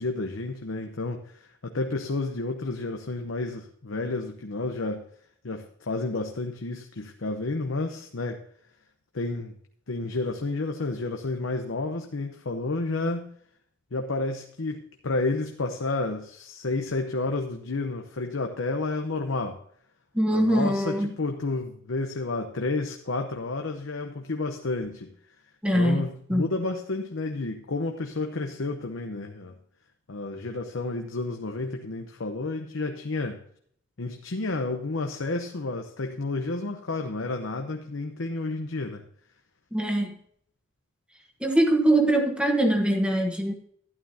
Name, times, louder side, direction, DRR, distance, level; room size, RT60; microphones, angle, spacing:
voice 1, 0.0-5.0 5.4-8.4 9.1-9.5 9.9-13.3 13.9-19.6 20.3-25.1 25.7-29.5 30.1-33.4 34.0-39.0, left 3 dB, 80° left, 4 dB, 0.9 m, -31 dB
voice 2, 20.1-21.1 25.6-26.5 39.7-40.1 41.4-43.5, right 1 dB, 5° right, 3 dB, 1.2 m, -23 dB
12.0 x 11.0 x 2.8 m, 0.63 s
head